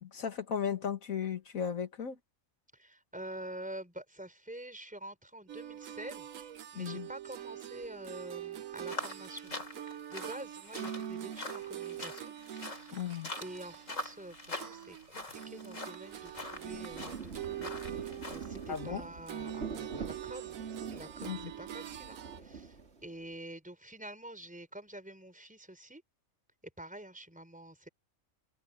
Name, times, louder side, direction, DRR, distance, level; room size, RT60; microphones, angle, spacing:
voice 1, 0.0-2.2 6.8-7.1 12.9-13.3 18.7-19.0 21.2-21.5, left 7 dB, 80° left, 2.1 m, -36 dB
voice 2, 2.7-12.3 12.7-13.1 13.4-20.6 20.9-26.0 26.8-27.9, right 1 dB, 5° right, 4.7 m, -47 dB
sound 1, 5.5-15.1 15.3-22.4, right 10 dB, 75° right, 1.2 m, -44 dB
sound 2, 8.8-18.8, left 2 dB, 65° left, 5.1 m, -44 dB
Rain, 16.0-23.3, right 5 dB, 50° right, 2.3 m, -46 dB
open air
omnidirectional pair, 1.4 m